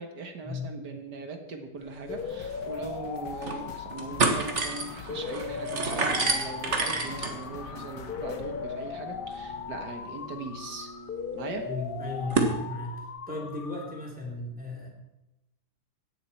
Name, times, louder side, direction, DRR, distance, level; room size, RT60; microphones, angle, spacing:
voice 1, 0.0-10.9 11.3-11.7, right 3 dB, 75° right, 5 dB, 2.0 m, -39 dB
sound 1, 2.1-9.9, left 6 dB, 85° left, 1.8 m, -46 dB
sound 2, 2.1-14.1, left 6 dB, 50° left, 0.6 m, -38 dB
sound 3, 2.2-2.3 2.5-2.6 3.2-3.6 3.9-12.6, right 3 dB, 45° right, 1.8 m, -31 dB
voice 2, 11.7-12.9 13.3-14.9, left 2 dB, 5° right, -2 dB, 3.4 m, -35 dB
16.5 x 11.5 x 4.4 m, 0.95 s
omnidirectional pair, 1.8 m